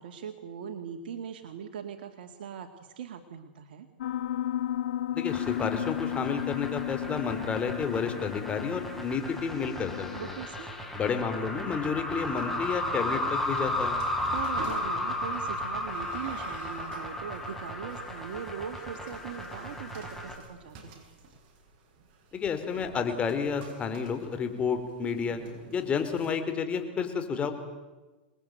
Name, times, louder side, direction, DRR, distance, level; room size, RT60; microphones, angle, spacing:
voice 1, 0.0-3.9 10.1-10.7 14.3-21.1, right 8 dB, 75° right, 5 dB, 2.3 m, -40 dB
Piano, 4.0-10.2, left 11 dB, 75° left, 1.5 m, -34 dB
voice 2, 5.1-10.3 10.9-14.0 22.3-25.4 25.7-27.5, left 6 dB, 25° left, 7 dB, 4.4 m, -31 dB
sound 1, 5.3-20.4, left 1 dB, 5° left, 5.5 m, -35 dB
sound 2, 12.1-26.3, right 3 dB, 45° right, 7.4 m, -50 dB
27.5 x 21.0 x 9.4 m, 1.2 s
hypercardioid pair, 125°, 5 cm